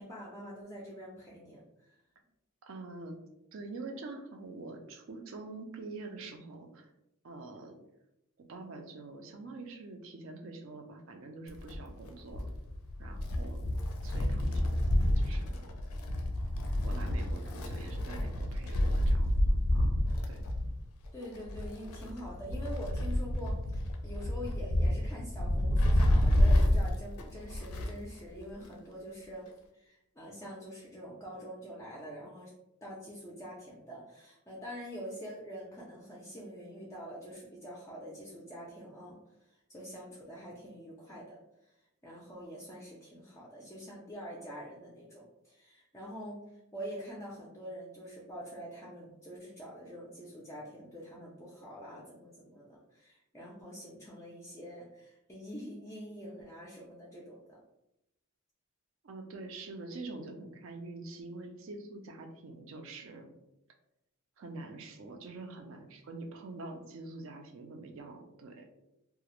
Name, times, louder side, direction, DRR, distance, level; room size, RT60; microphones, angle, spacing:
voice 1, 0.0-2.0 21.1-29.5 29.7-32.5 32.8-41.4 41.6-41.7 42.0-46.4 46.7-57.6, equal, 15° left, -5 dB, 0.3 m, -45 dB
voice 2, 2.6-3.2 3.5-6.9 7.2-7.7 8.4-12.5 13.0-13.6 14.0-14.8 15.2-15.7 16.7-20.0 20.3-20.4 59.0-63.3 64.4-68.7, right 3 dB, 65° right, 4 dB, 0.4 m, -45 dB
Wind, 11.5-28.1 28.4-28.5 29.5-29.6, left 1 dB, 80° left, 0.4 m, -29 dB
2.3 x 2.0 x 2.9 m, 0.86 s
head